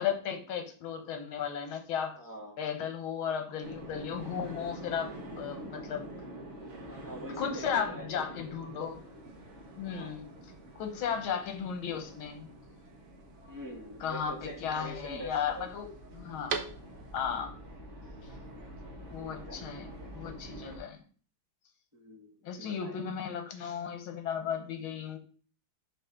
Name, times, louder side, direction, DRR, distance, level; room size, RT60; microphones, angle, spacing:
voice 1, 0.0-2.2 2.6-5.1 5.4-6.1 7.4-9.0 9.8-10.3 10.8-12.5 14.0-16.6 17.1-17.5 19.1-21.0 22.4-25.2, left 7 dB, 80° left, 6 dB, 1.9 m, -35 dB
voice 2, 2.2-2.6 6.9-8.2 9.8-10.3 13.5-15.7 19.1-20.3 21.9-23.0, equal, 10° right, 0 dB, 1.2 m, -45 dB
sound 1, 3.6-20.8, right 1 dB, 40° right, 1.7 m, -46 dB
sound 2, 8.8-17.3, right 6 dB, 85° right, 1.7 m, -46 dB
5.7 x 5.6 x 3.7 m, 0.41 s
omnidirectional pair, 2.2 m